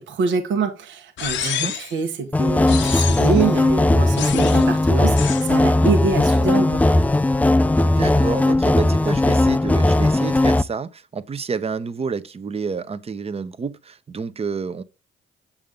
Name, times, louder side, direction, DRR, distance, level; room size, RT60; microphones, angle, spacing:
voice 1, 0.0-6.9, right 5 dB, 75° right, 1.2 m, -25 dB
sound 1, 1.2-2.0 2.7-3.4 4.2-4.7 5.2-5.5, left 10 dB, 65° left, 0.8 m, -28 dB
voice 2, 1.4-1.8 7.8-14.8, right 5 dB, 30° right, 0.8 m, -29 dB
sound 2, 2.3-10.6, left 2 dB, 10° left, 0.3 m, -17 dB
7.2 x 6.6 x 3.6 m
cardioid pair, 90°, 20 cm